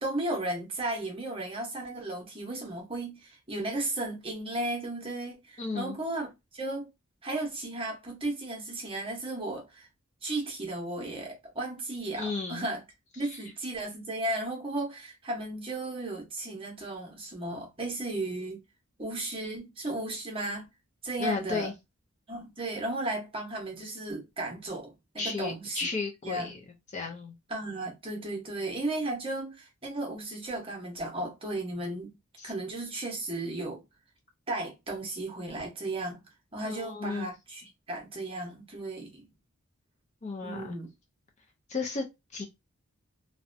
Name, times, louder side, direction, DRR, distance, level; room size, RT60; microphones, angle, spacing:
voice 1, 0.0-6.3 6.5-6.9 7.2-9.9 10.2-12.8 13.2-18.6 19.0-20.6 21.0-21.7 22.3-25.8 26.2-26.5 27.5-32.1 32.4-33.8 34.5-36.2 36.5-39.3 40.4-40.9, right 2 dB, 25° right, 0.8 m, -35 dB
voice 2, 5.6-6.0 12.2-12.7 13.2-13.4 21.2-21.7 25.2-26.6 26.9-27.4 32.4-32.5 36.6-37.3 40.2-40.8 41.7-42.4, left 4 dB, 30° left, 0.4 m, -34 dB
2.6 x 2.1 x 2.5 m
head